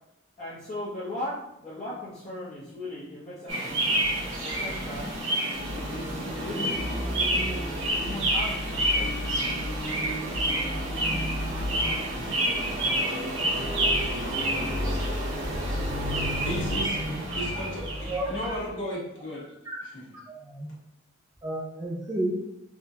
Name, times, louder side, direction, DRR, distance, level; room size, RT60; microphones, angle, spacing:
voice 1, 0.4-4.0 4.4-5.1 5.7-6.9 7.9-9.3, left 1 dB, 35° left, -12 dB, 1.0 m, -38 dB
sound 1, 3.5-18.7, right 1 dB, 65° right, 0.9 m, -28 dB
voice 2, 16.4-17.0 17.3-19.4 19.8-19.9, equal, 65° left, -7 dB, 1.2 m, -34 dB
voice 3, 20.3-20.7 21.4-22.4, right 1 dB, 20° right, -5 dB, 0.5 m, -31 dB
3.5 x 2.4 x 2.7 m, 0.82 s
head